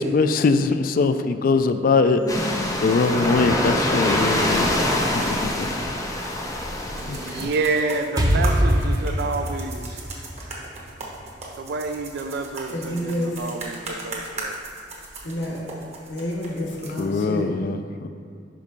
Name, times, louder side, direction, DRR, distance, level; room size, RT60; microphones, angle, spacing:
voice 1, 0.0-2.2 2.8-4.7 5.1-5.7 7.1-7.5 17.0-18.1, left 4 dB, 50° left, 10 dB, 0.3 m, -22 dB
voice 2, 2.1-2.8 3.1-3.6 12.7-13.4 15.2-15.6 16.1-17.5, equal, 70° left, -2 dB, 1.1 m, -29 dB
sound 1, 2.3-7.5, left 1 dB, 20° left, 0.8 m, -24 dB
sound 2, 5.8-17.0, right 2 dB, 35° right, 1.1 m, -38 dB
voice 3, 6.9-10.0 11.6-14.6, right 3 dB, 60° right, 6 dB, 0.4 m, -29 dB
Explosion, 8.2-11.9, equal, 20° right, 0.7 m, -24 dB
5.5 x 5.1 x 5.3 m, 2.5 s
head